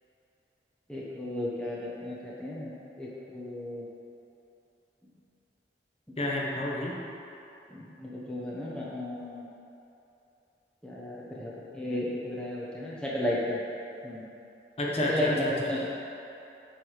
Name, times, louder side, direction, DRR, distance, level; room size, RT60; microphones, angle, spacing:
voice 1, 0.9-3.8 7.7-9.4 10.8-13.6 14.0-14.2 15.0-15.4 15.7-15.9, left 1 dB, 5° left, -7 dB, 0.9 m, -34 dB
voice 2, 6.2-7.0 14.8-15.7, left 1 dB, 35° left, -4 dB, 1.0 m, -30 dB
7.6 x 3.5 x 6.4 m, 2.9 s
head